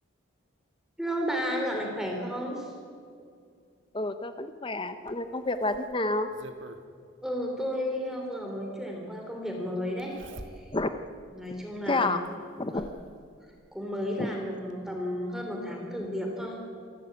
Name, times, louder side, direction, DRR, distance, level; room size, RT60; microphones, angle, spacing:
voice 1, 1.0-2.7 7.2-10.7 11.3-12.1 12.7-12.8 13.7-16.6, equal, ahead, 1 dB, 3.0 m, -33 dB
voice 2, 3.9-6.3 10.7-10.9 11.9-12.2 12.6-12.9 14.2-14.3, left 2 dB, 25° left, 10 dB, 0.8 m, -29 dB
Zipper (clothing), 5.1-6.8 8.3-8.4 10.0-11.0 11.4-11.5 12.2-13.1 14.3-14.4 14.7-14.8, right 1 dB, 65° right, 1.5 m, -47 dB
27.0 x 12.5 x 8.6 m, 2.3 s
head